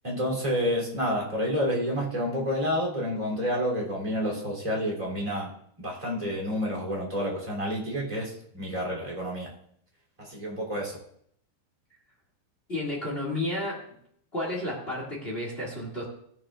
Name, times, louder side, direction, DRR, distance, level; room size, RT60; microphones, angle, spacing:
voice 1, 0.0-5.5 5.8-9.5 10.2-11.0, equal, 10° right, -4 dB, 2.1 m, -29 dB
voice 2, 12.7-13.8 14.3-16.0, left 1 dB, 55° left, -3 dB, 0.6 m, -31 dB
17.5 x 9.0 x 2.4 m, 0.66 s
omnidirectional pair, 5.3 m